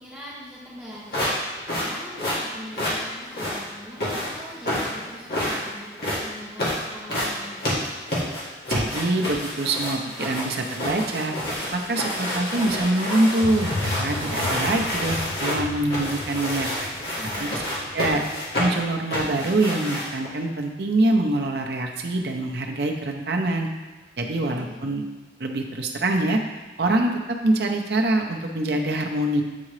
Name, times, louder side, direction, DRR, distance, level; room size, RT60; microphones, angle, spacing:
voice 1, 0.0-7.7 17.2-17.6 24.4-24.8, equal, 5° right, -9 dB, 1.3 m, -42 dB
sound 1, 1.1-20.3, left 1 dB, 60° left, 1.7 m, -28 dB
voice 2, 8.7-11.3 11.7-16.7 17.4-17.6 17.9-18.2 18.6-23.7 24.2-25.0 25.4-26.4 26.8-29.4, right 2 dB, 65° right, 2 dB, 0.7 m, -24 dB
sound 2, 13.4-19.0 19.5-19.6, left 3 dB, 45° left, 0.4 m, -35 dB
8.4 x 3.7 x 3.2 m, 1.3 s
head